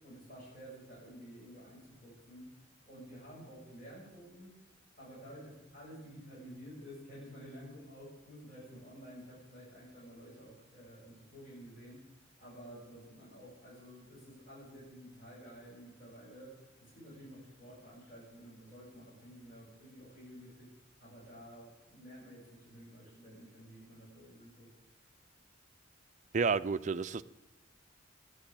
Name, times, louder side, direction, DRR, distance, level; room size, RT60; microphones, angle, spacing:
voice 1, 0.0-2.5 2.8-4.6 5.0-12.0 12.4-16.5 16.8-20.7 21.0-24.7, equal, 40° left, 7.0 m, -51 dB
voice 2, 26.3-27.2, right 5 dB, 35° right, 0.4 m, -30 dB
13.0 x 10.5 x 8.6 m
head